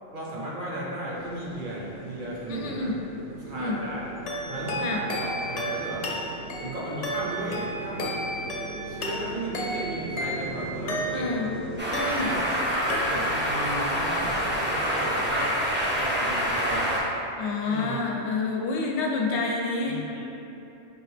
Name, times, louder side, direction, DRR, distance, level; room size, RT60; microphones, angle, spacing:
voice 1, 0.1-2.9 3.4-4.0 4.5-6.0 6.6-8.1 8.8-11.5 12.2-12.4 13.1-15.6 15.9-17.0 17.6-18.0 19.8-20.4, right 1 dB, 55° right, -5 dB, 0.8 m, -35 dB
sound 1, 1.1-11.8, right 2 dB, 85° right, 1.0 m, -40 dB
voice 2, 2.5-3.0 3.5-3.8 4.8-5.0 11.1-11.5 11.9-12.3 17.4-20.0, left 3 dB, 80° left, 0 dB, 0.9 m, -28 dB
sound 2, 4.3-11.5 11.9-12.6 12.9-13.5, equal, 65° left, 0.4 m, -33 dB
sound 3, 11.8-17.0, equal, 15° right, 0.4 m, -26 dB
4.3 x 2.9 x 3.2 m, 2.9 s
omnidirectional pair, 1.2 m